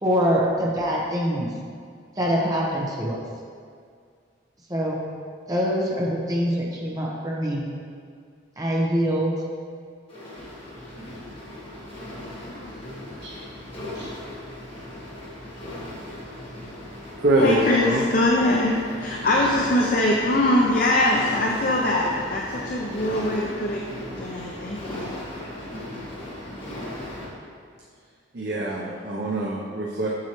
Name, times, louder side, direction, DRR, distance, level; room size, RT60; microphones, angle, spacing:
voice 1, 0.0-1.5 2.2-3.2 4.7-5.0 5.5-7.7 8.6-9.4, equal, 20° right, -4 dB, 1.0 m, -24 dB
sound 1, 10.1-27.3, left 1 dB, 30° left, 1.6 m, -37 dB
voice 2, 12.2-12.9 17.4-23.8 24.2-25.2, left 1 dB, 45° left, -2 dB, 0.6 m, -23 dB
voice 3, 17.2-18.1 28.3-30.1, right 1 dB, 55° right, -4 dB, 0.7 m, -24 dB
7.5 x 7.0 x 3.1 m, 2.1 s
head